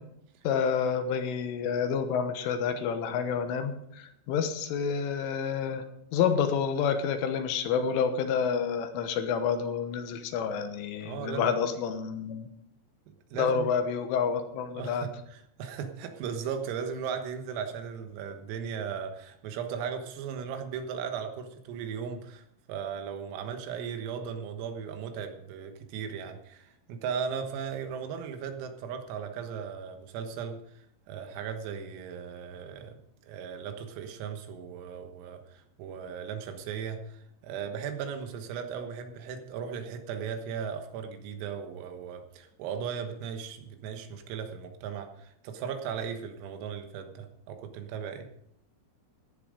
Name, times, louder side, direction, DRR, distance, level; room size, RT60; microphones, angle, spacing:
voice 1, 0.5-5.9 6.1-12.5 13.4-15.1, left 6 dB, 80° left, 7 dB, 3.5 m, -29 dB
voice 2, 11.0-11.6 13.3-13.7 14.7-22.4 22.7-33.0 33.2-48.3, right 7 dB, 90° right, 6 dB, 4.0 m, -37 dB
15.0 x 10.0 x 5.1 m, 0.74 s
omnidirectional pair, 5.9 m